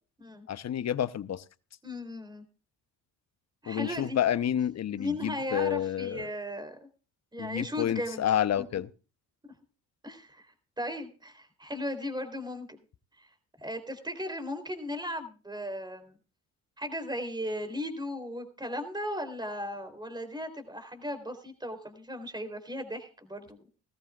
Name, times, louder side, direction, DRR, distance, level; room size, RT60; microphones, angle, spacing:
voice 1, 0.5-1.4 3.7-6.3 7.4-8.9, left 10 dB, 45° left, 15 dB, 0.9 m, -29 dB
voice 2, 1.8-2.4 3.6-4.2 5.0-6.9 7.3-8.2 8.6-8.7 9.4-9.5 10.0-12.8 13.2-13.3 13.6-16.2 16.8-23.6, left 1 dB, 10° right, 8 dB, 3.5 m, -36 dB
18.0 x 14.5 x 2.4 m, 0.33 s
supercardioid pair, 70°, 36 cm